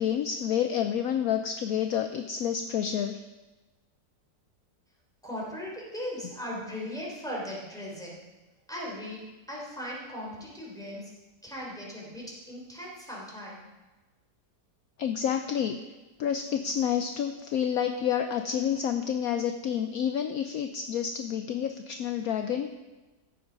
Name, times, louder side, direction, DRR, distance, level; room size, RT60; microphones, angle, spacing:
voice 1, 0.0-3.2 15.0-15.8 16.2-22.7, left 9 dB, 70° left, 7 dB, 1.0 m, -29 dB
voice 2, 5.2-8.2 8.7-11.1 11.4-13.7, equal, ahead, -4 dB, 3.5 m, -38 dB
14.0 x 8.0 x 5.3 m, 1.2 s
omnidirectional pair, 1.8 m